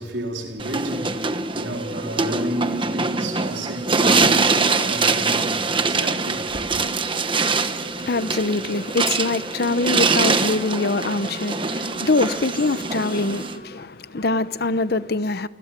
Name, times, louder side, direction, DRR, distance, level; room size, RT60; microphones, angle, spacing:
voice 1, 0.0-6.8, right 1 dB, 80° right, 4.1 m, -32 dB
sound 1, 0.6-13.6, right 4 dB, 30° right, 1.2 m, -23 dB
voice 2, 7.6-15.5, left 3 dB, 60° left, 0.9 m, -24 dB
Wind instrument woodwind instrument, 8.0-13.8, equal, 30° left, 5.8 m, -44 dB
28.5 x 20.5 x 7.5 m
head